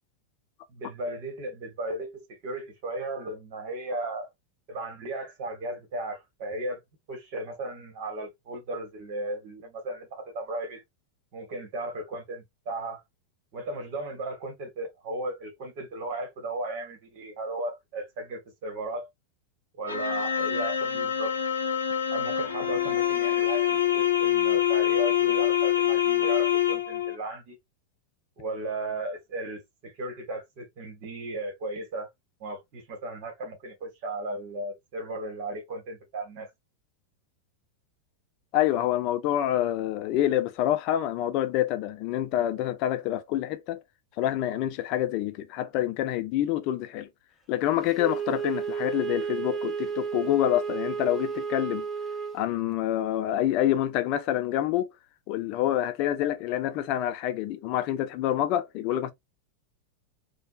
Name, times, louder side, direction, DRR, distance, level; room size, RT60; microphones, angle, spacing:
voice 1, 0.7-4.3 4.7-6.8 7.1-10.8 11.3-13.0 13.5-19.1 19.7-21.3 22.1-27.6 28.4-32.1 32.4-36.5, right 2 dB, 45° right, 1.6 m, -35 dB
sound 1, 19.9-27.1, left 10 dB, 75° left, 0.8 m, -25 dB
voice 2, 38.5-43.8 44.2-47.1 47.5-51.8 52.3-54.9 55.3-59.1, left 12 dB, 40° left, 0.5 m, -27 dB
Wind instrument woodwind instrument, 48.0-52.4, right 6 dB, 5° right, 0.9 m, -32 dB
4.1 x 2.4 x 2.5 m
figure-of-eight pair, 90°, 0 cm